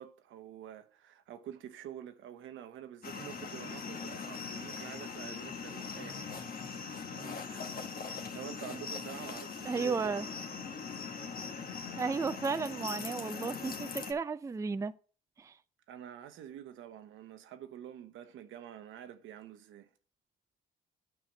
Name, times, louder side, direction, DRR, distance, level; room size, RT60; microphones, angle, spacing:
voice 1, 0.0-6.3 7.1-7.6 7.9-10.2 10.9-11.1 15.9-19.9, right 10 dB, 80° right, 1.0 m, -48 dB
sound 1, 3.0-14.1, left 5 dB, 45° left, 1.3 m, -41 dB
voice 2, 9.6-10.3 12.0-14.9 15.4-15.6, right 5 dB, 15° right, 0.4 m, -34 dB
9.6 x 5.9 x 5.1 m
cardioid pair, 90°, 20 cm